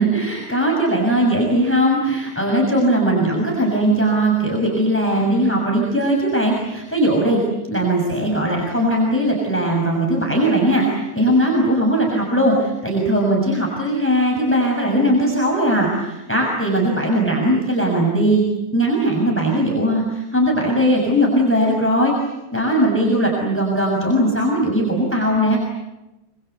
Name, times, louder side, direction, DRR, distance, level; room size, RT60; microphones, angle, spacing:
voice 1, 0.0-7.4 7.7-22.1 22.5-25.6, right 1 dB, 5° left, -1 dB, 6.3 m, -19 dB
27.0 x 25.5 x 8.1 m, 0.96 s
omnidirectional pair, 3.3 m